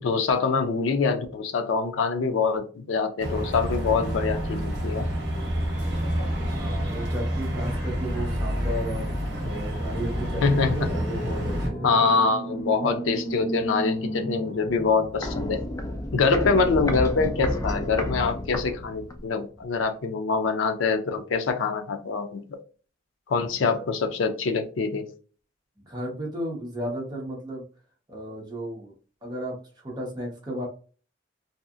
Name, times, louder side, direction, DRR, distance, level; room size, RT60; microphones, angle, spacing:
voice 1, 0.0-5.1 10.4-10.9 11.8-15.6 16.1-22.6 23.3-25.1, left 4 dB, 85° left, 6 dB, 0.4 m, -25 dB
sound 1, 3.2-11.7, equal, 60° right, 0.8 m, -28 dB
voice 2, 6.4-9.1 9.4-11.9 23.4-23.8 25.9-27.6 28.1-28.9 29.2-30.7, right 1 dB, 20° right, -3 dB, 0.8 m, -34 dB
sound 2, 9.8-16.0, equal, 65° left, 0.8 m, -34 dB
Walk footsteps, 14.6-19.3 19.6-19.7, left 1 dB, 15° left, 0.3 m, -31 dB
2.7 x 2.3 x 2.4 m, 0.38 s
head